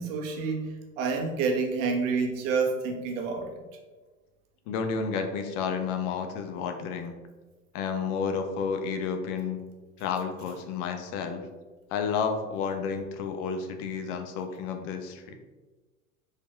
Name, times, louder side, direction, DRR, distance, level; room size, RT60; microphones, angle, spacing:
voice 1, 0.0-3.6, right 4 dB, 60° right, 3 dB, 1.5 m, -28 dB
voice 2, 4.7-7.1 7.7-9.6 10.0-11.4 11.9-15.4, left 6 dB, 55° left, 6 dB, 1.1 m, -31 dB
5.3 x 5.1 x 4.4 m, 1.3 s
hypercardioid pair, 100°, 44 cm